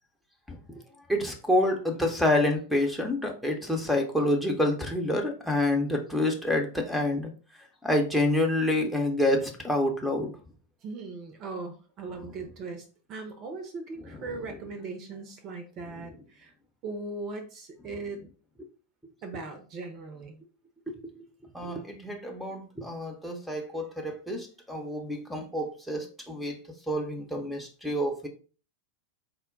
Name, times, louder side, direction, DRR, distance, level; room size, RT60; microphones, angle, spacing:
voice 1, 1.1-7.3 7.8-10.3 21.5-26.6 26.9-28.3, left 1 dB, ahead, 3 dB, 0.7 m, -27 dB
voice 2, 10.8-12.8 13.1-16.5 16.8-18.2 19.2-20.4, right 3 dB, 35° right, 6 dB, 0.6 m, -39 dB
4.2 x 2.2 x 3.8 m, 0.38 s
figure-of-eight pair, 90°, 0 cm